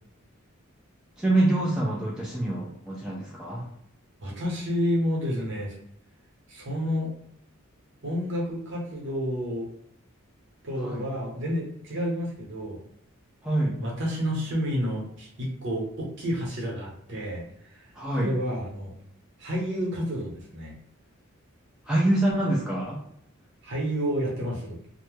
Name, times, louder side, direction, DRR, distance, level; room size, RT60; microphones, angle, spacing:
voice 1, 1.2-3.7 10.8-11.0 13.4-13.8 17.9-18.4 21.9-23.0, right 1 dB, 5° right, -5 dB, 0.4 m, -25 dB
voice 2, 4.2-5.7 6.5-7.1 8.0-9.7 10.6-12.8 13.8-17.9 18.2-18.9 19.4-20.7 23.6-24.8, equal, 60° right, -3 dB, 1.0 m, -30 dB
2.8 x 2.1 x 3.2 m, 0.72 s
head